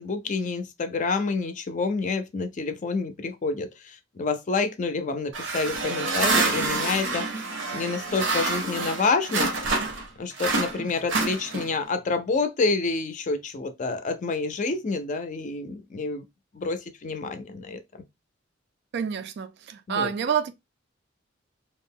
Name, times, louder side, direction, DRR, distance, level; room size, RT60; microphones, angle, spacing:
voice 1, 0.0-7.3 7.7-9.5 10.2-16.2 16.5-17.8 19.9-20.1, left 4 dB, 40° left, 0.4 m, -28 dB
sound 1, 5.3-10.1 10.4-11.9, right 3 dB, 80° right, 0.7 m, -27 dB
voice 2, 18.9-20.5, right 7 dB, 60° right, 0.3 m, -28 dB
2.4 x 2.1 x 3.5 m
head